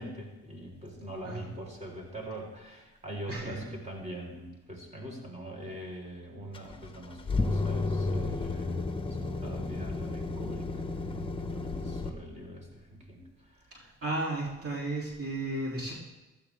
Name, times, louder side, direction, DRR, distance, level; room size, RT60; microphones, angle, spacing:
voice 1, 0.0-8.8 9.1-13.7, right 1 dB, 25° right, 0 dB, 4.5 m, -43 dB
voice 2, 3.3-3.6 13.7-15.9, right 2 dB, 50° right, -3 dB, 3.3 m, -34 dB
sound 1, 6.5-12.1, left 3 dB, 15° left, 1.2 m, -32 dB
15.5 x 13.0 x 3.6 m, 1.1 s
cardioid pair, 90°, 30 cm